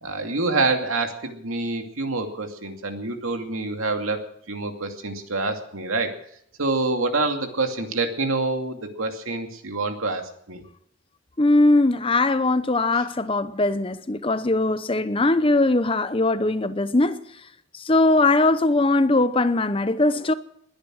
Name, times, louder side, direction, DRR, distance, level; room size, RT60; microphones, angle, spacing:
voice 1, 0.0-4.2 4.5-6.1 6.6-10.6 12.9-13.0, right 3 dB, 85° right, 2.5 m, -26 dB
voice 2, 11.4-17.2 17.8-20.3, left 2 dB, 25° left, 0.8 m, -20 dB
21.0 x 10.5 x 6.4 m
head